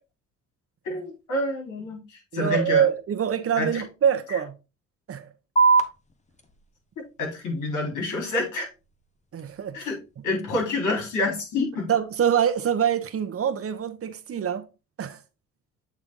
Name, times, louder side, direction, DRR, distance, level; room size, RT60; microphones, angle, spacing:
voice 1, 0.8-2.8 3.6-3.8 4.3-4.4 7.2-8.7 9.7-10.0 10.2-11.9, left 2 dB, 80° left, 3.8 m, -28 dB
voice 2, 2.3-4.5 5.1-5.3 9.3-9.8 11.9-14.7 15.0-15.2, right 8 dB, 50° right, 1.0 m, -25 dB
sound 1, 5.6-12.5, right 4 dB, 25° left, 1.0 m, -29 dB
8.5 x 3.5 x 3.7 m
cardioid pair, 90°, 30 cm